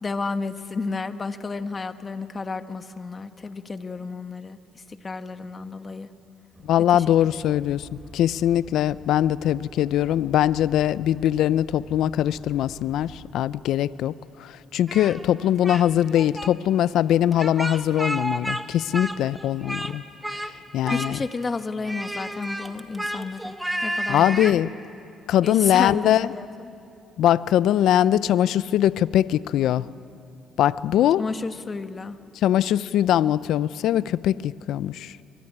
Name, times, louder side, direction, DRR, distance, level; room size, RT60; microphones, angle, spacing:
voice 1, 0.0-4.6 5.0-6.1 6.9-7.7 20.9-23.6 23.8-24.6 25.4-26.5 31.2-32.2, left 4 dB, 30° left, 9 dB, 1.3 m, -31 dB
Bus, 6.5-13.3, right 2 dB, 30° right, 5.3 m, -47 dB
voice 2, 6.6-7.9 8.1-20.0 20.3-21.2 24.1-24.7 25.3-26.3 27.2-29.9 30.6-31.2 32.3-35.2, left 11 dB, 80° left, 17 dB, 0.5 m, -22 dB
Speech, 14.9-15.8 16.1-16.5 17.3-18.6 18.9-19.9 20.2-20.5 20.8-21.4 21.8-24.6, right 1 dB, 5° right, 1.4 m, -31 dB
24.0 x 23.5 x 9.9 m, 2.6 s
cardioid pair, 100°, 0 cm